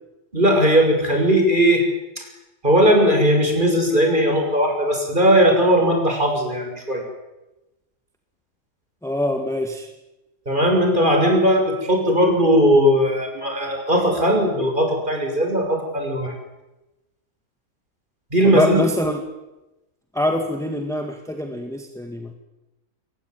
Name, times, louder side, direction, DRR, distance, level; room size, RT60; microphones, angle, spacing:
voice 1, 0.3-1.9 2.2-2.3 2.6-7.0 10.5-16.3 18.3-18.8, equal, 30° right, 3 dB, 6.7 m, -18 dB
voice 2, 9.0-9.9 18.4-19.2 20.1-22.3, left 1 dB, ahead, 4 dB, 2.1 m, -24 dB
25.0 x 22.5 x 9.5 m, 1.0 s
omnidirectional pair, 1.6 m